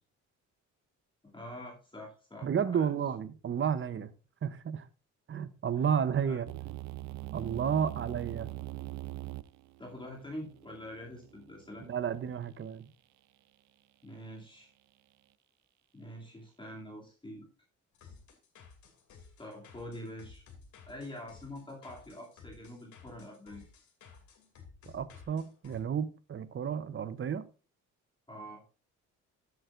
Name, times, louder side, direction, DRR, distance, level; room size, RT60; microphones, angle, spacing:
voice 1, 1.2-2.8 5.7-5.8 6.3-6.4 9.8-11.9 14.0-14.7 15.9-17.5 19.4-20.4 20.9-23.7 28.3-28.6, left 1 dB, 15° left, 2.5 m, -45 dB
voice 2, 2.4-4.1 4.4-4.9 5.3-6.5 7.3-8.5 11.9-12.9 24.9-27.5, right 7 dB, 40° right, 0.8 m, -32 dB
sound 1, 6.5-12.4, right 16 dB, 70° right, 0.5 m, -43 dB
sound 2, 17.9-25.8, left 5 dB, 75° left, 2.6 m, -55 dB
13.5 x 8.0 x 2.5 m
cardioid pair, 90°, 30 cm